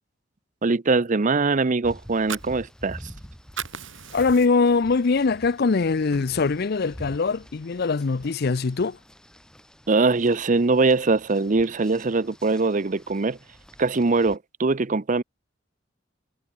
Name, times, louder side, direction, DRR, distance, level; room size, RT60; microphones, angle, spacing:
voice 1, 0.6-3.0 9.9-13.4 13.8-15.2, right 3 dB, 40° right, 0.7 m, -22 dB
sound 1, 1.8-14.4, equal, 5° left, 3.5 m, -47 dB
Fire, 2.0-3.2 3.4-4.8 5.2-5.4 5.7-6.7, right 7 dB, 90° right, 4.6 m, -37 dB
voice 2, 4.1-9.0, left 4 dB, 55° left, 0.5 m, -22 dB
head